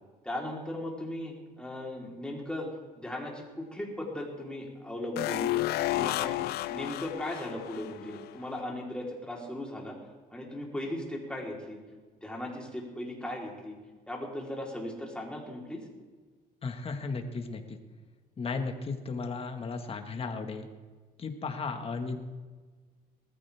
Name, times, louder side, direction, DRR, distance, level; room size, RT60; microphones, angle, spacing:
voice 1, 0.2-2.7 3.0-5.5 5.9-6.4 6.7-10.0 10.3-11.8 12.2-13.7 14.1-15.8, left 1 dB, 5° left, -2 dB, 3.9 m, -37 dB
sound 1, 5.2-8.3 8.6-8.7, left 16 dB, 70° left, 0.5 m, -32 dB
voice 2, 16.6-17.8 18.4-20.7 21.2-22.2, left 4 dB, 35° left, 5 dB, 1.8 m, -35 dB
20.5 x 14.5 x 3.6 m, 1.4 s
cardioid pair, 110°, 17 cm